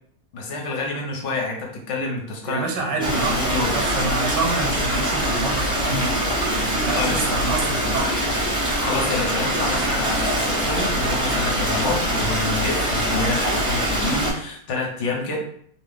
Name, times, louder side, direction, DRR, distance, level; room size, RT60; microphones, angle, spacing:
voice 1, 0.3-2.6 2.9-3.8 7.0-7.2 8.8-15.4, left 3 dB, 55° left, 0 dB, 0.8 m, -27 dB
voice 2, 2.5-8.1, right 3 dB, 85° right, 1 dB, 1.4 m, -27 dB
Stream, 3.0-14.3, right 1 dB, 5° right, 0.5 m, -23 dB
2.9 x 2.4 x 3.4 m, 0.63 s
omnidirectional pair, 1.9 m